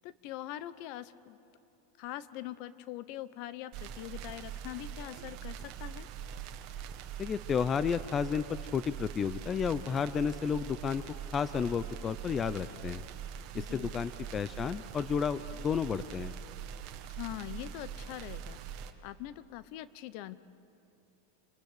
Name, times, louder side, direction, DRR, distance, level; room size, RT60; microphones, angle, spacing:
voice 1, 0.0-1.4 2.0-6.1 13.5-13.9 17.0-18.6 19.0-20.4, left 13 dB, 55° left, 15 dB, 0.9 m, -43 dB
sound 1, 3.7-18.9, right 8 dB, 50° right, 1.6 m, -43 dB
voice 2, 7.2-11.0 11.3-13.0 13.5-16.3, left 6 dB, 25° left, 14 dB, 0.6 m, -32 dB
27.5 x 20.0 x 8.1 m, 2.7 s
hypercardioid pair, 125°, 0 cm